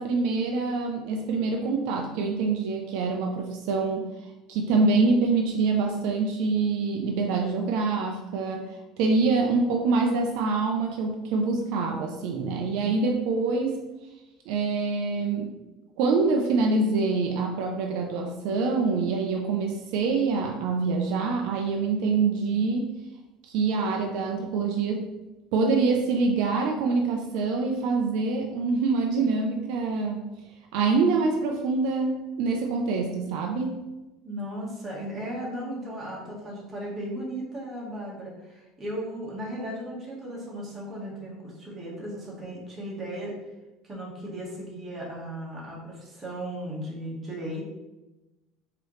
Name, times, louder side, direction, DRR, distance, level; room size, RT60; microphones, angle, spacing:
voice 1, 0.0-4.1 4.5-8.7 9.0-13.8 14.5-15.6 16.0-22.9 23.5-25.1 25.5-30.2 30.7-33.8, right 4 dB, 70° right, 2 dB, 0.5 m, -25 dB
voice 2, 34.2-43.4 43.8-47.6, right 1 dB, 20° right, -4 dB, 1.4 m, -36 dB
4.7 x 2.9 x 3.2 m, 1.0 s
cardioid pair, 145°, 0 cm